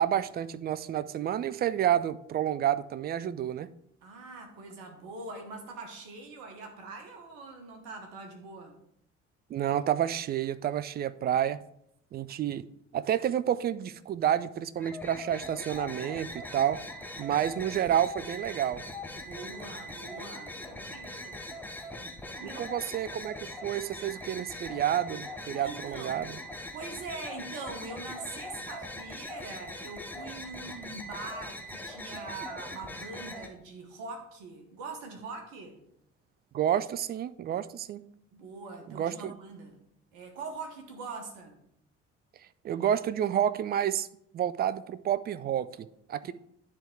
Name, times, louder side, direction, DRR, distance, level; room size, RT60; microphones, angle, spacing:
voice 1, 0.0-3.7 9.5-11.6 12.1-12.6 12.9-16.8 17.2-18.8 22.4-23.3 23.6-26.3 36.5-38.0 38.9-39.3 42.6-44.1 44.3-46.3, right 10 dB, 30° right, 16 dB, 0.3 m, -29 dB
voice 2, 4.0-8.7 17.1-17.5 19.2-21.9 22.4-22.8 25.6-26.2 26.7-35.8 38.3-39.7 40.1-41.6 46.2-46.3, right 3 dB, 65° right, 4 dB, 1.2 m, -43 dB
sound 1, 14.8-33.5, left 1 dB, 5° left, 0.9 m, -41 dB
9.9 x 3.6 x 4.6 m, 0.74 s
figure-of-eight pair, 50°, 37 cm